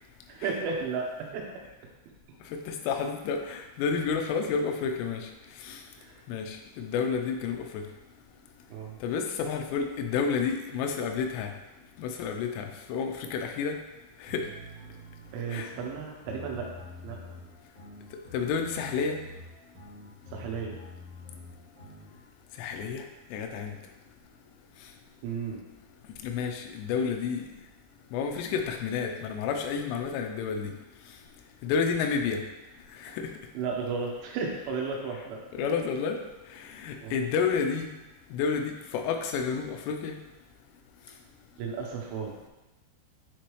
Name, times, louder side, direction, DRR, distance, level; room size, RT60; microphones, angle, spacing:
voice 1, 0.3-1.5 6.0-6.2 8.7-8.9 15.3-16.7 17.0-17.2 20.3-20.8 25.2-25.6 33.1-33.2 33.5-35.4 37.0-37.2 41.6-42.3, right 5 dB, 80° right, 0 dB, 3.3 m, -34 dB
voice 2, 2.5-5.3 5.6-5.8 6.3-7.8 9.0-11.5 12.0-13.8 14.2-14.5 15.5-15.7 18.3-19.2 22.6-23.0 23.3-23.7 26.2-27.5 28.1-30.7 31.6-32.4 33.0-33.2 35.6-36.2 36.5-37.9 38.3-40.2, left 6 dB, 90° left, 4 dB, 3.2 m, -30 dB
sound 1, 14.3-22.2, left 1 dB, 50° right, 1.9 m, -47 dB
9.8 x 3.3 x 3.1 m, 1.0 s
omnidirectional pair, 5.6 m